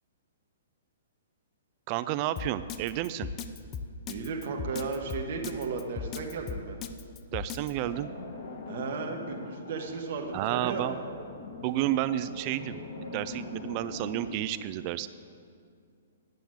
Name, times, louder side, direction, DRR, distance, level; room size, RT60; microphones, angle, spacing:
voice 1, 1.9-3.3 7.3-8.1 10.3-10.9 11.6-12.8 13.1-15.1, right 14 dB, 35° right, 14 dB, 0.3 m, -31 dB
Drum kit, 2.4-7.7, left 7 dB, 25° left, 0.5 m, -37 dB
voice 2, 4.1-6.8 8.7-11.0, right 4 dB, 50° right, 1 dB, 1.1 m, -35 dB
sound 1, 7.8-14.4, left 3 dB, 55° left, 1.6 m, -42 dB
9.3 x 6.9 x 7.6 m, 2.3 s
hypercardioid pair, 150°, 0 cm